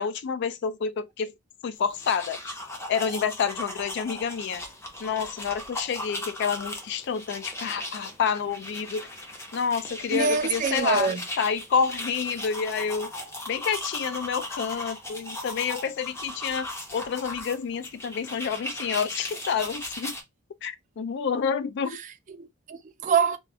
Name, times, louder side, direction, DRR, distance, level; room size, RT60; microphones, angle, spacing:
voice 1, 0.0-1.3 1.6-2.4 2.9-4.6 5.0-9.1 9.5-11.1 11.4-13.1 13.5-20.1 20.6-22.0, left 6 dB, 55° left, 0.3 m, -28 dB
sound 1, 1.8-20.2, left 1 dB, 15° left, 0.6 m, -38 dB
voice 2, 10.1-11.2 21.9-23.4, right 6 dB, 40° right, 0.4 m, -26 dB
2.4 x 2.3 x 3.3 m
head